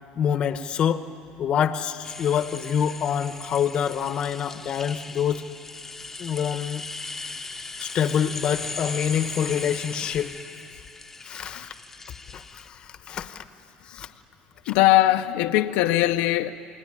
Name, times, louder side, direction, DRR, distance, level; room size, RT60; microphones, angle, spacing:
voice 1, 0.1-1.1 1.4-5.4 6.2-6.8 7.8-10.3 11.2-11.7 12.3-13.4 13.8-14.1 14.6-14.7, left 8 dB, 35° left, 1.0 m, -26 dB
sound 1, 2.0-12.7, left 3 dB, 10° left, 0.9 m, -38 dB
voice 2, 14.7-16.5, left 15 dB, 70° left, 0.8 m, -20 dB
28.0 x 19.5 x 9.9 m
cardioid pair, 155°, 3 cm